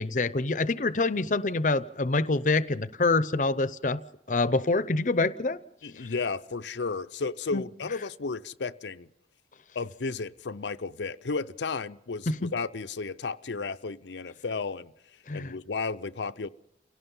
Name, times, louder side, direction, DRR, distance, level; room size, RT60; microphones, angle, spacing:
voice 1, 0.0-4.0 4.3-5.6 7.5-7.6 12.3-12.5 15.3-15.5, left 3 dB, 45° left, 0.7 m, -26 dB
voice 2, 5.8-9.1 9.7-16.5, left 4 dB, 85° left, 0.7 m, -33 dB
29.5 x 17.5 x 5.5 m
head